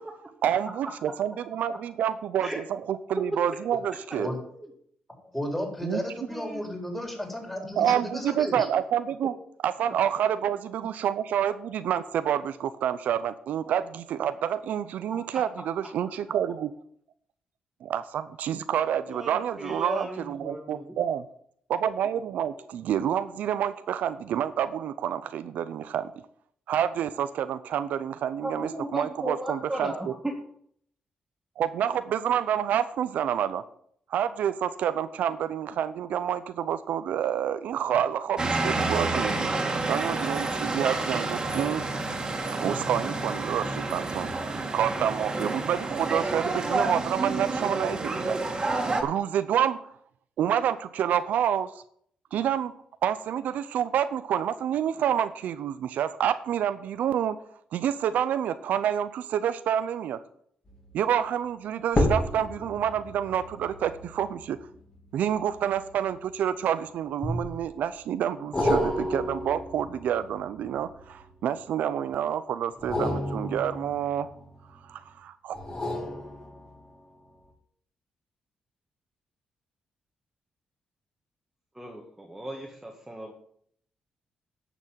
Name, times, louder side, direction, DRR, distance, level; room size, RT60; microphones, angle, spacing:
voice 1, 0.4-4.3 5.8-6.0 7.8-9.3 9.6-16.7 17.8-21.3 21.7-26.1 26.7-30.1 31.6-33.6 34.1-41.9 42.5-48.4 49.0-49.9 50.4-51.8 52.3-52.7 53.0-57.4 57.7-60.2 60.9-64.6 65.1-74.3 74.8-75.6, right 9 dB, 80° right, 12 dB, 0.6 m, -28 dB
voice 2, 5.3-8.7, left 1 dB, 10° left, 1 dB, 4.1 m, -33 dB
voice 3, 6.3-6.6 15.1-15.4 19.1-20.9 28.4-30.4 81.7-83.3, right 1 dB, 10° right, 0 dB, 1.7 m, -35 dB
sound 1, 38.4-49.0, right 3 dB, 30° right, 2.1 m, -29 dB
sound 2, 60.7-61.0 61.9-66.5 67.2-67.8 68.5-71.5 72.7-74.8 75.5-77.0 77.4-77.5, left 1 dB, 30° left, 3.1 m, -32 dB
11.0 x 6.1 x 7.4 m, 0.65 s
cardioid pair, 90°, 3 cm